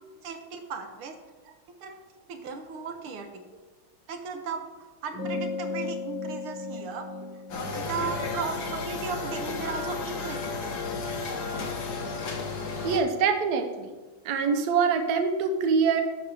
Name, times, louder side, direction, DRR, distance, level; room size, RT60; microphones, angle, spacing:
voice 1, 0.2-1.2 1.8-1.9 2.3-3.3 4.1-4.6 5.0-7.1 7.8-10.7, right 5 dB, 85° right, 5 dB, 1.9 m, -36 dB
sound 1, 5.1-10.0, left 3 dB, 40° left, 2.5 m, -36 dB
sound 2, 7.5-13.0, left 4 dB, 55° left, 1.6 m, -33 dB
voice 2, 12.8-13.9 14.2-16.0, right 5 dB, 60° right, 5 dB, 1.3 m, -24 dB
11.5 x 3.9 x 6.7 m, 1.2 s
omnidirectional pair, 2.3 m